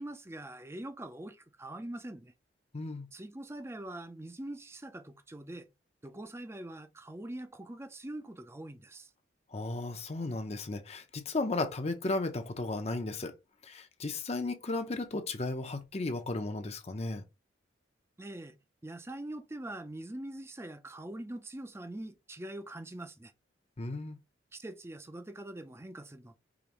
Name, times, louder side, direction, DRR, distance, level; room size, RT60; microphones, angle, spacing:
voice 1, 0.0-2.3 3.1-5.7 6.0-9.1 18.2-18.6 18.8-23.3 24.5-26.4, right 1 dB, 15° right, 0.5 m, -43 dB
voice 2, 2.7-3.1 9.5-13.3 13.6-17.2 23.8-24.2, left 2 dB, 35° left, 0.7 m, -35 dB
5.0 x 3.0 x 3.0 m
head